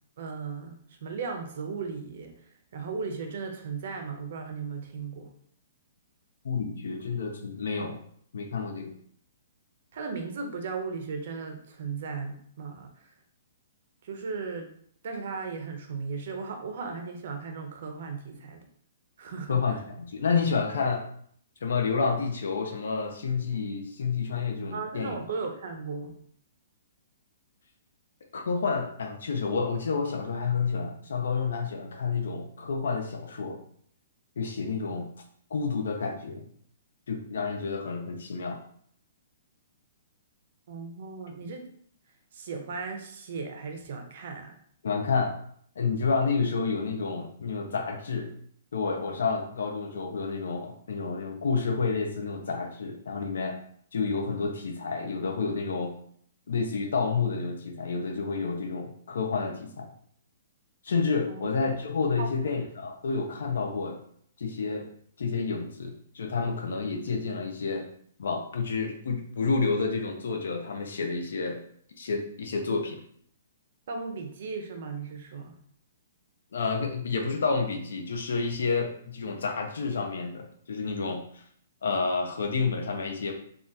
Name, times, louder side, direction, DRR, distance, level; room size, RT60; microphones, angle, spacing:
voice 1, 0.2-2.3 2.7-5.3 9.9-12.9 14.0-14.7 15.0-18.6 19.2-19.8 24.7-26.2 40.7-41.7 42.3-44.6 61.3-61.5 62.2-62.3 73.9-75.6, right 4 dB, 50° right, 5 dB, 0.5 m, -36 dB
voice 2, 6.4-8.0 8.3-9.0 19.5-21.1 21.6-25.2 28.3-33.6 34.4-35.1 35.5-36.5 37.1-38.6 44.8-45.3 45.8-48.3 48.7-53.6 53.9-55.9 56.5-59.9 60.8-64.0 64.4-64.9 65.2-67.9 68.2-71.6 72.0-73.0 76.5-81.4 81.8-83.3, left 4 dB, 80° left, 3 dB, 0.4 m, -29 dB
3.4 x 2.3 x 2.6 m, 0.62 s
hypercardioid pair, 170°, 0 cm